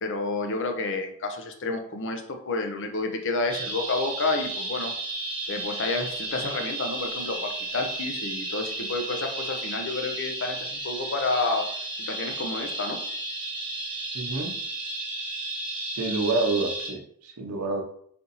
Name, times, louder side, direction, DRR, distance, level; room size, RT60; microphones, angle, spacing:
voice 1, 0.0-4.9 5.5-11.7 12.1-13.0, left 3 dB, 60° left, 4 dB, 0.7 m, -30 dB
sound 1, 3.5-16.9, right 2 dB, 20° right, 1.2 m, -33 dB
voice 2, 14.1-14.6 15.9-17.8, right 3 dB, 85° right, 3 dB, 0.8 m, -28 dB
4.3 x 2.6 x 4.1 m, 0.65 s
head